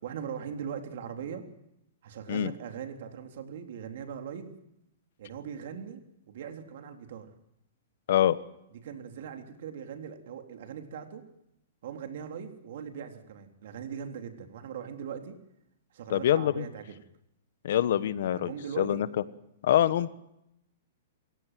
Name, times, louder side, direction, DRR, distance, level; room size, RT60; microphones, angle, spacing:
voice 1, 0.0-1.5 2.0-4.5 5.2-6.0 6.3-7.3 8.8-11.2 11.8-15.3 15.9-17.0 18.3-19.0, right 8 dB, 60° right, 5 dB, 3.6 m, -40 dB
voice 2, 16.1-16.6 17.6-19.1 19.6-20.1, left 11 dB, 65° left, 16 dB, 1.2 m, -25 dB
28.0 x 16.5 x 7.7 m, 0.83 s
hypercardioid pair, 150°, 0 cm